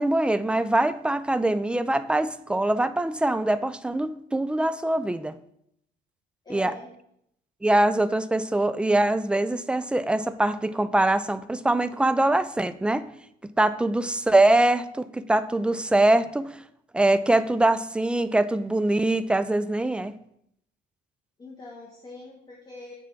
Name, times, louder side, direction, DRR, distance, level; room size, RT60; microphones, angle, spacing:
voice 1, 0.0-5.4 6.5-6.7 7.6-13.1 13.6-16.6 16.9-20.1, right 2 dB, 5° right, 13 dB, 0.3 m, -23 dB
voice 2, 6.4-6.9 21.4-22.9, left 2 dB, 25° left, -3 dB, 1.3 m, -43 dB
7.5 x 3.4 x 5.8 m, 0.74 s
cardioid pair, 110°, 17 cm